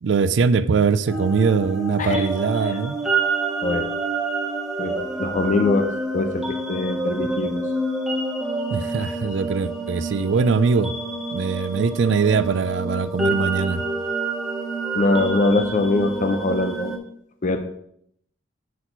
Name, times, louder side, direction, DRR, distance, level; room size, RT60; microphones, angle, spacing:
voice 1, 0.0-3.0 8.7-10.9 11.3-13.8, right 5 dB, 65° right, 15 dB, 0.4 m, -21 dB
sound 1, 1.1-17.0, right 3 dB, ahead, 0.8 m, -27 dB
voice 2, 4.8-7.6 14.9-16.9 17.4-17.6, left 2 dB, 40° left, 7 dB, 0.5 m, -23 dB
6.2 x 4.1 x 5.7 m, 0.70 s
head